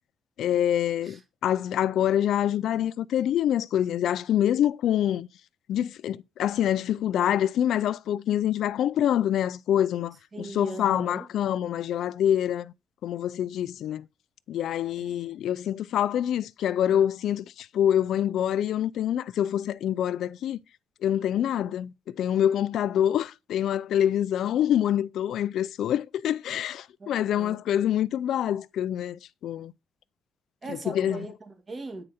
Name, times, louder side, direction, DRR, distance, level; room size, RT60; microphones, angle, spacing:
voice 1, 0.4-5.3 5.7-12.7 13.0-14.1 14.5-20.6 21.0-29.7 30.7-31.2, left 10 dB, 75° left, 0.4 m, -26 dB
voice 2, 10.3-11.3 15.0-15.2 27.0-27.6 30.6-32.0, right 2 dB, 35° right, 2.2 m, -39 dB
8.9 x 4.9 x 4.2 m
cardioid pair, 90°, 0 cm